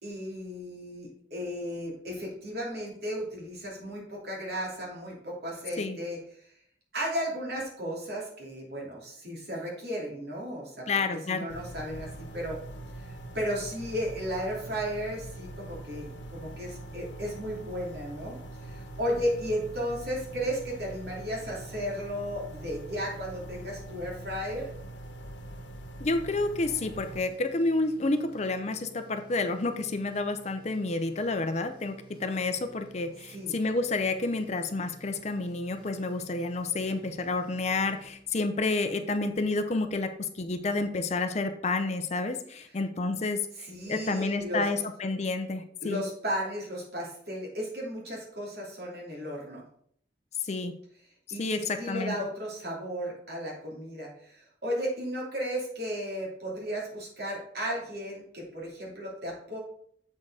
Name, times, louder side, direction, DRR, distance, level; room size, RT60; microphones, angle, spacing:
voice 1, 0.0-6.2 6.9-10.9 11.3-12.6 13.0-18.4 18.6-24.7 33.3-33.5 43.6-44.6 45.8-49.6 51.3-59.6, equal, 60° right, -3 dB, 2.7 m, -34 dB
voice 2, 10.9-11.5 26.0-43.4 43.9-46.0 50.4-50.7 51.4-52.2, left 3 dB, 40° left, 8 dB, 0.6 m, -30 dB
sound 1, 11.5-27.2, right 1 dB, 90° left, 1.0 m, -43 dB
sound 2, 27.0-38.7, right 2 dB, 25° right, 1.6 m, -53 dB
7.4 x 4.5 x 4.8 m, 0.64 s
head